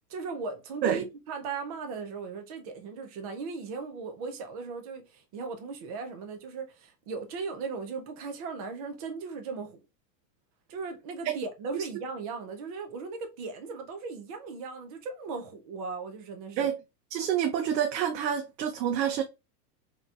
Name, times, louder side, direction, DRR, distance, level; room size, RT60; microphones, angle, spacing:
voice 1, 0.1-9.8 10.7-16.7, right 4 dB, 25° right, 0.3 m, -37 dB
voice 2, 17.1-19.2, right 9 dB, 80° right, 0.7 m, -27 dB
3.9 x 2.8 x 2.3 m
supercardioid pair, 145°, 49 cm